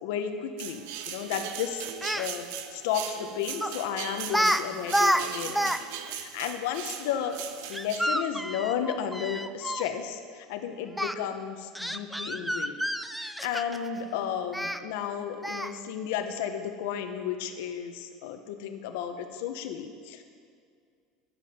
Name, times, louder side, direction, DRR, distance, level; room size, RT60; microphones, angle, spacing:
voice 1, 0.0-1.9 2.2-2.4 2.7-5.7 6.1-7.4 7.7-12.7 13.2-20.2, left 8 dB, 75° left, 7 dB, 1.0 m, -33 dB
sound 1, 0.6-8.1, right 9 dB, 70° right, 0.8 m, -39 dB
Speech, 1.9-2.3 3.6-3.8 4.3-4.6 4.9-5.8 6.1-6.2 7.7-9.9 11.0-11.1 11.8-13.9 14.5-14.8 15.4-15.8, equal, ahead, 0.3 m, -28 dB
12.5 x 9.7 x 4.4 m, 2.1 s
cardioid pair, 155°, 0 cm